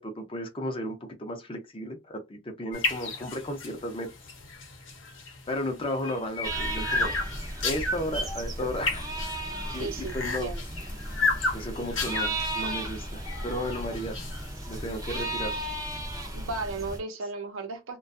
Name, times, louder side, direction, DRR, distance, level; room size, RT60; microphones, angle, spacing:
voice 1, 0.0-4.1 5.5-7.1 7.6-9.1 9.7-10.5 11.5-14.2 14.7-15.6, equal, 25° left, 0.6 m, -34 dB
sound 1, 2.7-15.2, left 3 dB, 65° left, 0.8 m, -33 dB
sound 2, 6.4-17.0, right 1 dB, 20° right, 0.5 m, -35 dB
voice 2, 9.7-10.6 16.3-18.0, right 3 dB, 80° right, 0.7 m, -35 dB
2.4 x 2.3 x 2.4 m
head